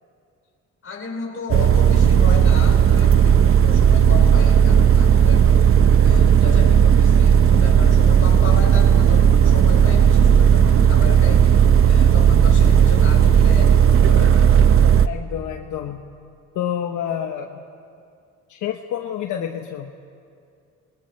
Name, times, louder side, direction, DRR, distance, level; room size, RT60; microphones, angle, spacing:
voice 1, 0.8-14.6, left 4 dB, 45° left, 0 dB, 4.5 m, -33 dB
sound 1, 1.5-15.1, right 8 dB, 45° right, 0.7 m, -14 dB
voice 2, 15.1-16.0 16.5-17.6 18.5-19.9, left 9 dB, 80° left, 4 dB, 1.1 m, -28 dB
28.0 x 20.5 x 4.5 m, 2.4 s
cardioid pair, 90°, 30 cm